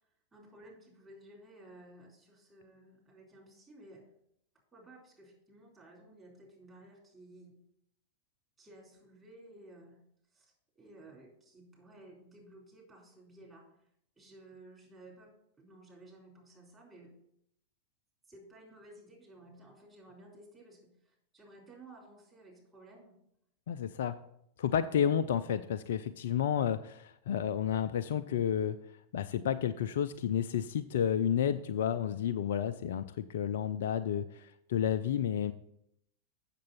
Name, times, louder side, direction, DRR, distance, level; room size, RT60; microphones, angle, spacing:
voice 1, 0.3-4.0 4.7-7.6 8.6-10.0 10.3-10.5 10.8-13.6 14.2-17.1 18.3-23.1, right 1 dB, 20° right, -3 dB, 4.1 m, -55 dB
voice 2, 23.7-24.2 24.6-28.8 29.1-35.5, left 9 dB, 60° left, 9 dB, 0.4 m, -31 dB
7.5 x 6.7 x 5.6 m, 0.74 s
figure-of-eight pair, 90°, 0 cm